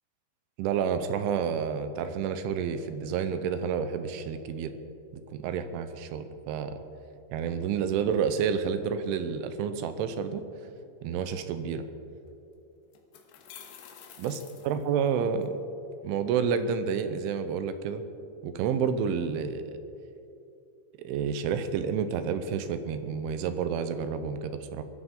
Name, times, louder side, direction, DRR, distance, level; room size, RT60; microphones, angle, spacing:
voice 1, 0.6-4.7 5.1-6.8 7.3-10.4 11.0-11.9 14.2-14.4 14.6-15.6 16.0-18.0 18.4-19.8 21.0-24.8, right 7 dB, 80° right, 10 dB, 3.2 m, -29 dB
sound 1, 12.3-12.4 12.9-15.5, left 8 dB, 70° left, 3.0 m, -49 dB
22.0 x 14.0 x 3.8 m, 2.7 s
omnidirectional pair, 5.6 m